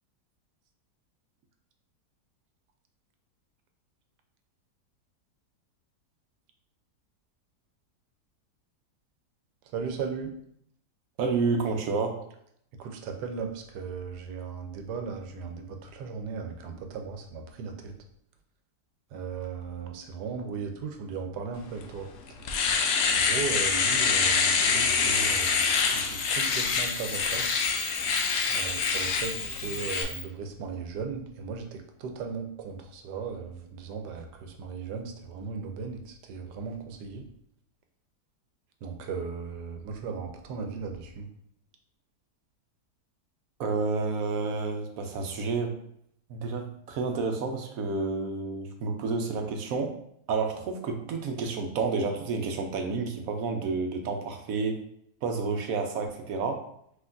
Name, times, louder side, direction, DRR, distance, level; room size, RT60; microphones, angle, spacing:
voice 1, 9.7-10.3 12.8-17.9 19.1-22.1 23.1-25.5 25.9-27.5 28.5-37.2 38.8-41.3, right 5 dB, 85° right, 5 dB, 1.2 m, -37 dB
voice 2, 11.2-12.2 43.6-45.8 46.3-49.9 50.3-54.8 55.2-56.6, right 4 dB, 70° right, 4 dB, 0.9 m, -30 dB
Domestic sounds home sounds, 21.8-21.9 22.3-30.0, left 5 dB, 75° left, 0.6 m, -26 dB
Camera, 23.2-30.2, left 1 dB, 30° left, 1.3 m, -42 dB
5.7 x 3.0 x 2.5 m, 0.70 s
omnidirectional pair, 1.7 m